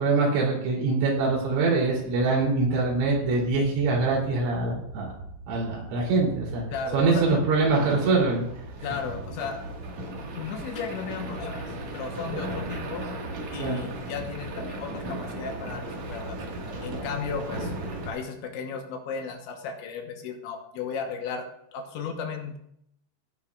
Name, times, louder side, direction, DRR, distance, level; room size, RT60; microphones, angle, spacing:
voice 1, 0.0-5.1 5.5-6.6 6.9-8.5 13.6-13.8, right 3 dB, 90° right, -3 dB, 5.8 m, -24 dB
sound 1, 1.1-18.1, right 1 dB, 55° right, 2.1 m, -37 dB
voice 2, 6.7-7.4 8.8-9.6 10.4-11.6 11.9-13.1 13.5-16.4 16.8-17.7 18.1-21.4 21.7-22.6, left 6 dB, 75° left, 3 dB, 3.2 m, -34 dB
16.0 x 10.5 x 2.4 m, 0.73 s
omnidirectional pair, 5.6 m